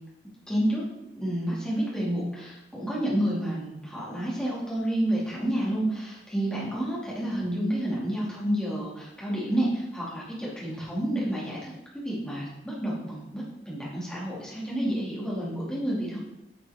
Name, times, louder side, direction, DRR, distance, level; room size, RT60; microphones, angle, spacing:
voice 1, 0.5-0.8 1.2-11.7 12.0-16.2, right 1 dB, 5° left, -7 dB, 2.8 m, -29 dB
10.0 x 5.8 x 3.7 m, 0.91 s
head